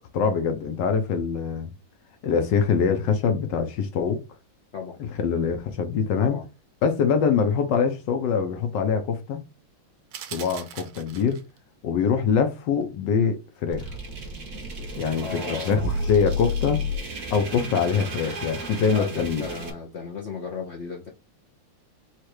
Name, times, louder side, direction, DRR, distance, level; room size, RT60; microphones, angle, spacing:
voice 1, 0.1-1.7 2.2-4.2 5.0-6.4 6.8-9.4 10.3-11.4 11.8-13.9 14.9-16.8 17.3-19.4, left 6 dB, 70° left, 1.3 m, -24 dB
sound 1, 10.1-11.6, right 10 dB, 85° right, 1.5 m, -40 dB
sound 2, 13.7-19.7, left 1 dB, 45° right, 1.3 m, -31 dB
voice 2, 15.2-15.9 18.8-21.1, left 5 dB, 90° left, 0.6 m, -35 dB
4.4 x 2.4 x 4.7 m
omnidirectional pair, 2.2 m